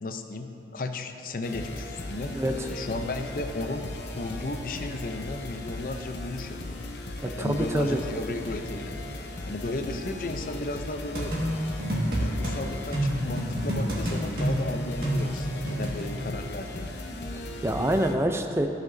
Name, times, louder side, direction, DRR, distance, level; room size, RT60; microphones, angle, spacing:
voice 1, 0.0-2.3 2.7-6.8 7.2-8.9 9.5-11.4 12.2-16.9, left 2 dB, 50° left, 6 dB, 0.5 m, -34 dB
sound 1, 1.4-18.1, left 2 dB, 75° left, 0.8 m, -37 dB
voice 2, 2.3-2.7 7.4-8.0 17.6-18.7, right 1 dB, 15° right, 5 dB, 0.4 m, -26 dB
sound 2, 11.1-12.6 12.9-16.1, right 1 dB, 55° right, 1.8 m, -28 dB
15.5 x 5.8 x 2.7 m, 3.0 s
head